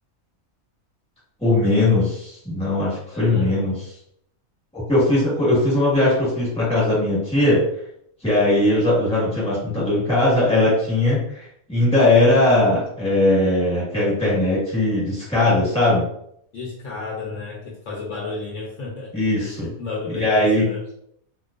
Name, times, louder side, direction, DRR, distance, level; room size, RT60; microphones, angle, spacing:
voice 1, 1.4-3.7 4.7-7.6 8.2-16.1 19.1-19.7 20.1-20.6, left 2 dB, 5° left, -8 dB, 1.2 m, -19 dB
voice 2, 3.1-3.8 16.5-20.8, left 4 dB, 70° left, -4 dB, 0.8 m, -33 dB
2.3 x 2.2 x 2.4 m, 0.71 s
omnidirectional pair, 1.5 m